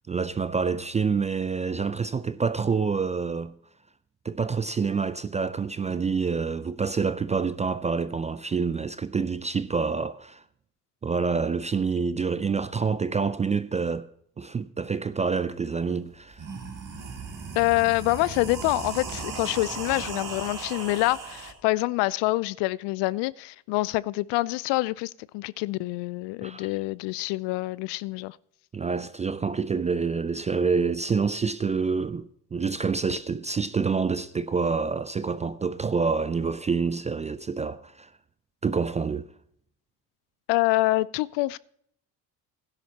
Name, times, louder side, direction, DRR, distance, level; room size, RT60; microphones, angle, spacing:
voice 1, 0.1-3.5 4.2-10.4 11.0-14.1 14.4-16.4 26.4-26.7 28.7-38.1 38.6-39.3, right 5 dB, 15° right, 0.3 m, -27 dB
sound 1, 15.8-15.9 16.2-21.5, right 5 dB, 40° right, 3.1 m, -37 dB
voice 2, 17.6-28.4 40.5-41.6, left 20 dB, 60° left, 0.5 m, -26 dB
16.5 x 11.0 x 2.8 m
hypercardioid pair, 60°, 50 cm